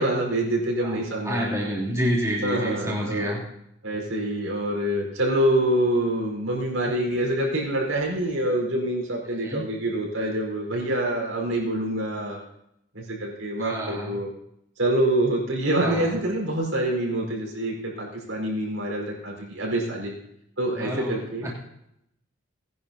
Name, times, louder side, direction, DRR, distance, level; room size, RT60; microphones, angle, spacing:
voice 1, 0.0-1.5 2.4-3.3 3.8-12.4 12.9-14.3 14.8-20.1 20.6-21.5, right 1 dB, 75° right, -2 dB, 4.8 m, -26 dB
voice 2, 0.8-3.4 9.4-9.6 13.6-14.2 15.8-16.2 20.8-21.2 21.4-21.5, equal, 15° right, -5 dB, 3.1 m, -28 dB
19.5 x 11.0 x 2.9 m, 0.79 s
head